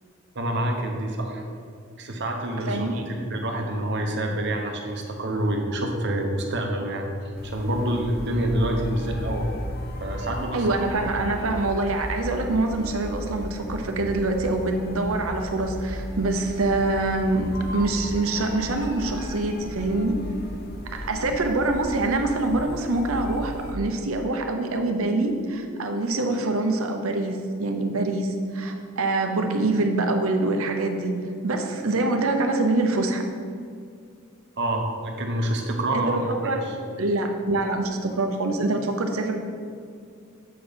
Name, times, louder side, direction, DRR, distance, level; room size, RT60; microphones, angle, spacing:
voice 1, 0.3-1.4 2.0-7.1 7.4-9.5 10.0-10.8 20.9-21.1 34.6-36.6, right 1 dB, 55° right, 2 dB, 1.0 m, -27 dB
voice 2, 2.7-3.0 10.5-20.2 20.9-31.1 31.4-33.2 35.9-36.6 37.0-39.4, right 2 dB, 80° right, 4 dB, 0.8 m, -25 dB
sound 1, 7.4-23.8, left 1 dB, 50° left, 0.9 m, -35 dB
7.7 x 4.5 x 5.1 m, 2.2 s
head